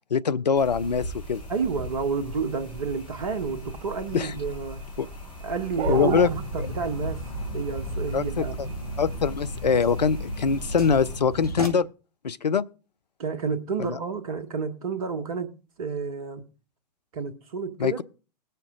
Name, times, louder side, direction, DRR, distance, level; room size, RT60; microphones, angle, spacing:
voice 1, 0.1-1.4 4.1-4.3 5.0-5.1 5.9-6.3 6.6-6.7 8.1-8.7 9.0-11.9 12.2-12.6 13.8-14.0 17.8-18.0, left 6 dB, 80° left, 0.6 m, -23 dB
night forest owl, 0.5-11.2, equal, 25° left, 4.3 m, -39 dB
voice 2, 1.5-4.8 5.4-7.2 7.5-8.7 13.2-15.5 15.8-16.4 17.1-18.0, right 5 dB, 55° right, 1.4 m, -30 dB
sound 1, 5.8-11.7, equal, 60° left, 2.6 m, -34 dB
sound 2, 5.8-6.3, right 9 dB, 25° right, 0.7 m, -30 dB
20.0 x 6.7 x 3.7 m
figure-of-eight pair, 100°, 21 cm